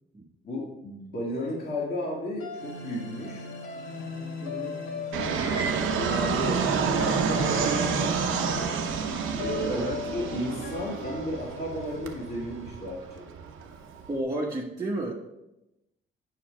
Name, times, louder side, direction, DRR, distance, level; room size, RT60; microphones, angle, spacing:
voice 1, 0.4-3.5 6.0-6.6 6.9-8.7 9.4-13.3, left 1 dB, 50° left, -4 dB, 2.0 m, -34 dB
sound 1, 2.4-12.7, left 4 dB, 80° left, 1.9 m, -38 dB
voice 2, 4.4-4.8 9.7-10.0 14.1-15.1, right 1 dB, 20° right, -3 dB, 1.1 m, -31 dB
Fixed-wing aircraft airplane, 5.1-14.2, right 6 dB, 85° right, 0.9 m, -29 dB
7.4 x 5.8 x 4.4 m, 0.93 s
cardioid pair, 90°, 20 cm